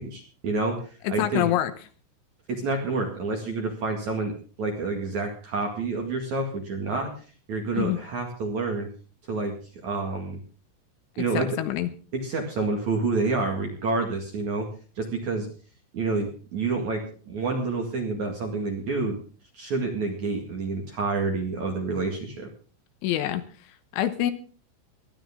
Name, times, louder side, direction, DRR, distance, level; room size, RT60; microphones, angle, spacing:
voice 1, 0.0-1.5 2.5-4.3 4.6-7.1 7.5-8.9 9.3-9.5 9.8-10.4 11.2-11.5 12.1-14.7 15.0-15.5 15.9-19.2 19.5-22.5, right 3 dB, 50° right, 2 dB, 2.5 m, -28 dB
voice 2, 1.0-1.7 7.8-8.0 11.3-11.9 23.0-24.3, left 13 dB, 75° left, 10 dB, 3.3 m, -26 dB
20.0 x 12.5 x 3.6 m, 0.38 s
omnidirectional pair, 5.8 m